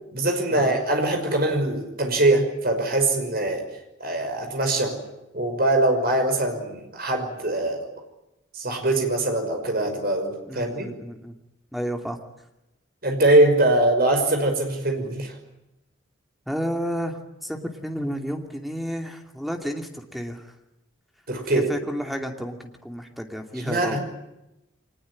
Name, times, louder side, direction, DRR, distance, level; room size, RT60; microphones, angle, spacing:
voice 1, 0.1-3.7 4.0-5.0 5.3-7.9 8.5-10.9 13.0-15.3 21.3-21.7 23.5-24.0, right 2 dB, 50° right, 4 dB, 5.7 m, -22 dB
voice 2, 10.5-11.3 11.7-12.2 16.5-20.4 21.7-24.0, equal, ahead, 4 dB, 2.6 m, -31 dB
24.5 x 20.0 x 9.9 m, 0.93 s
head